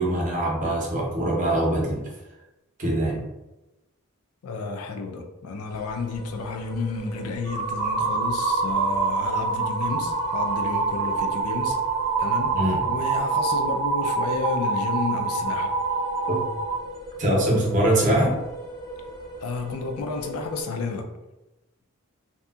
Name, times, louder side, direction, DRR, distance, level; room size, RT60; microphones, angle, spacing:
voice 1, 0.0-2.0 2.8-3.2 12.5-12.8 16.3-16.5 17.2-18.4, right 1 dB, 35° right, -2 dB, 0.6 m, -23 dB
voice 2, 4.4-11.8 12.2-12.6 12.9-15.7 19.4-21.1, left 4 dB, 85° left, 5 dB, 0.4 m, -31 dB
sound 1, 5.7-20.6, right 1 dB, 20° left, 0.3 m, -40 dB
sound 2, 7.5-16.8, right 4 dB, 85° right, 0.5 m, -25 dB
2.7 x 2.6 x 2.3 m, 0.98 s
head